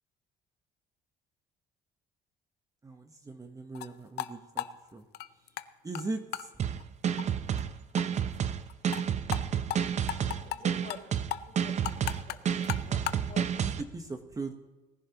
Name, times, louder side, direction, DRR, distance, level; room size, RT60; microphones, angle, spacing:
voice 1, 2.8-4.6 4.9-5.0 5.8-6.5 13.6-14.5, right 3 dB, 20° right, 6 dB, 1.1 m, -39 dB
sound 1, 3.7-3.9 4.2-4.3 4.6-5.7 5.9-6.0 6.3-6.5 6.8-6.9 7.2-7.3 7.6-7.7 8.0-8.1 8.3-8.4 8.7-9.0 9.3-9.4 9.7-9.8 10.1-10.6 10.9-11.0 11.3-13.2, left 13 dB, 75° left, 0.6 m, -35 dB
sound 2, 6.6-13.8, right 8 dB, 40° right, 0.7 m, -30 dB
voice 2, 10.2-11.0 11.5-11.8 12.1-13.4, left 6 dB, 50° left, -1 dB, 3.9 m, -48 dB
19.0 x 10.5 x 3.0 m, 1.1 s
cardioid pair, 110°, 17 cm